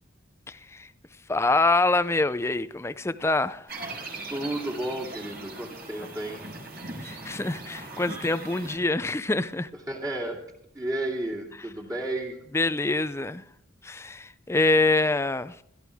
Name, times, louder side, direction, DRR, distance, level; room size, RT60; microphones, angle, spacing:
voice 1, 0.5-0.9 1.3-3.7 7.0-9.7 12.5-13.4 13.8-15.6, left 2 dB, 15° left, 0.5 m, -25 dB
sound 1, 3.7-8.8, right 2 dB, 55° right, 4.6 m, -39 dB
voice 2, 4.3-6.5 9.9-10.5 10.7-12.4, right 1 dB, 20° right, 2.4 m, -32 dB
17.0 x 13.0 x 3.5 m
head